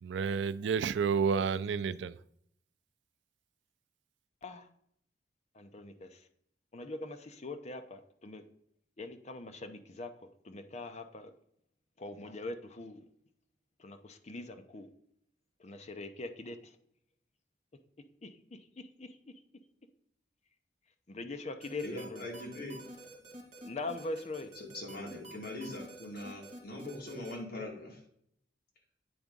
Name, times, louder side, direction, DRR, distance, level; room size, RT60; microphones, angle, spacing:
voice 1, 0.0-2.2, right 6 dB, 80° right, 0.4 m, -30 dB
voice 2, 5.6-6.1 6.7-8.4 9.0-10.1 10.4-11.3 12.0-13.0 13.8-14.9 15.6-16.6 18.2-18.3 19.0-19.1 21.1-22.2 23.6-24.5, left 2 dB, 40° left, 0.7 m, -42 dB
sound 1, 21.6-27.3, right 1 dB, 35° right, 2.1 m, -49 dB
voice 3, 21.8-22.8 24.5-28.0, left 1 dB, 60° left, 2.1 m, -42 dB
8.7 x 3.6 x 5.2 m
head